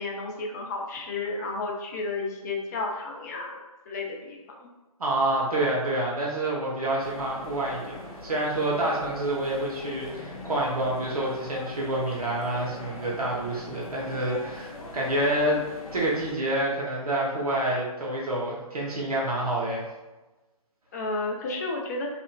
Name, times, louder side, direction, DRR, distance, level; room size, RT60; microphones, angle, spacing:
voice 1, 0.0-3.6 3.9-4.7 20.9-22.1, left 3 dB, 30° left, 0 dB, 0.4 m, -32 dB
voice 2, 5.0-15.6 15.9-19.8, right 1 dB, 80° right, -4 dB, 0.8 m, -28 dB
sound 1, 7.0-16.4, left 2 dB, 70° left, 0.7 m, -41 dB
2.7 x 2.5 x 2.2 m, 1.1 s
figure-of-eight pair, 140°, 19 cm